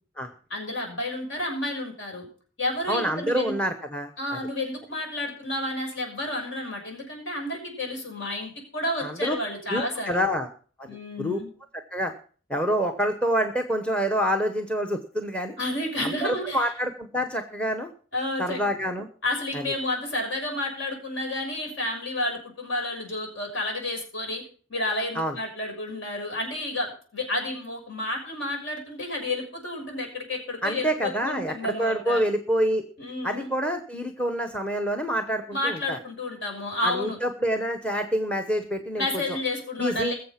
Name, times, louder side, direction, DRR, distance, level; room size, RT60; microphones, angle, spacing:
voice 1, 0.5-2.3 2.6-3.5 4.2-10.2 10.9-11.5 15.6-16.7 18.1-18.6 19.2-24.4 24.7-32.2 33.0-33.5 35.5-37.2 39.0-40.1, left 1 dB, 60° left, 2 dB, 6.2 m, -31 dB
voice 2, 2.9-4.1 9.0-9.4 9.7-10.5 10.8-10.9 11.2-11.4 11.9-12.1 12.5-15.5 16.0-17.9 18.4-19.1 19.5-19.6 25.1-25.3 30.6-32.8 33.2-36.0 36.8-39.4 39.8-40.1, equal, 5° left, 7 dB, 1.0 m, -27 dB
21.0 x 7.5 x 5.8 m, 0.43 s
head